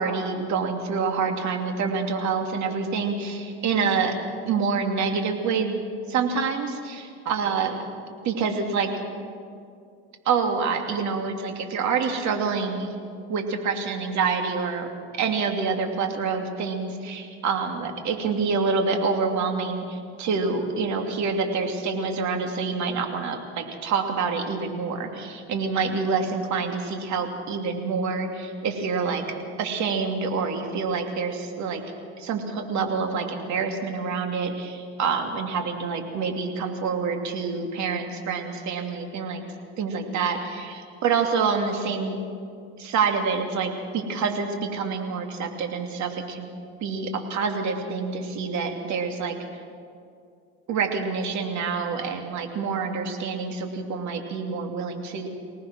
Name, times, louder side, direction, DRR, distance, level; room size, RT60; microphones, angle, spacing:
voice 1, 0.0-4.1 4.4-5.8 6.1-7.8 8.2-8.9 10.2-12.9 13.3-14.9 15.1-29.2 29.6-31.8 32.2-39.4 39.8-42.1 42.8-46.5 46.8-49.6 50.7-55.3, right 5 dB, 50° right, 4 dB, 3.0 m, -27 dB
25.0 x 18.5 x 6.2 m, 2.3 s
supercardioid pair, 120°, 36 cm